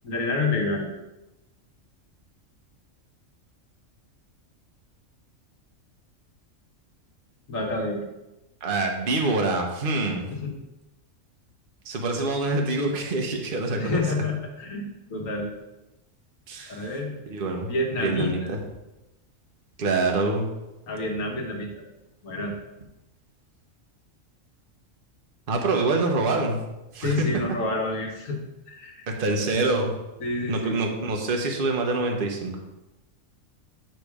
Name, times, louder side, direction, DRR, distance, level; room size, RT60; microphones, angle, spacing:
voice 1, 0.0-0.9 7.5-8.0 10.3-10.6 13.8-15.5 16.7-17.1 17.7-18.6 20.9-21.7 22.2-22.6 27.0-28.4 28.7-29.1 30.2-30.8, left 2 dB, 80° left, 1 dB, 1.7 m, -28 dB
voice 2, 8.6-10.3 11.8-14.0 16.5-16.9 17.3-17.7 18.0-18.6 19.8-20.5 25.5-26.6 26.9-27.3 29.2-29.9 30.5-32.5, right 3 dB, 45° right, 2 dB, 1.1 m, -25 dB
9.2 x 3.3 x 4.9 m, 0.98 s
omnidirectional pair, 1.4 m